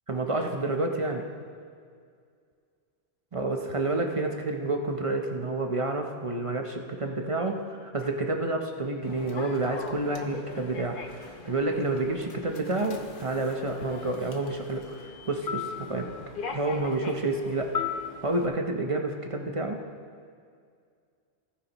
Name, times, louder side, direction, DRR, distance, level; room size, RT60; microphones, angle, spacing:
voice 1, 0.1-1.2 3.3-16.1 16.5-17.7 18.2-19.8, right 2 dB, 35° right, 3 dB, 0.8 m, -29 dB
Human voice / Subway metro underground, 9.0-18.5, left 6 dB, 55° left, 1.0 m, -39 dB
18.0 x 9.4 x 3.0 m, 2.1 s
omnidirectional pair, 1.1 m